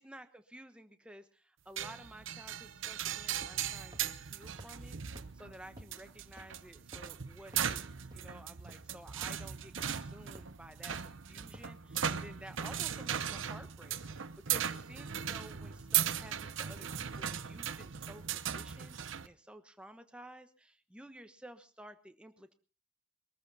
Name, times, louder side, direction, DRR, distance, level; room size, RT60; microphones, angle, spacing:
voice 1, 0.0-5.0 5.3-22.5, right 1 dB, 5° right, 8 dB, 1.1 m, -53 dB
sound 1, 1.8-19.3, right 9 dB, 80° right, 0.8 m, -38 dB
sound 2, 3.4-3.7 3.9-4.0 4.6-4.7 5.1-5.2 5.8-5.9 6.4-6.5 6.9-7.1 7.5-7.6 8.1-8.2 8.7-8.8 9.2-9.3 9.8-9.9 10.3-10.4 10.9-11.1 11.5-11.6 12.1-12.2 12.6-12.7, equal, 20° right, 1.9 m, -50 dB
22.0 x 13.5 x 4.1 m, 0.36 s
head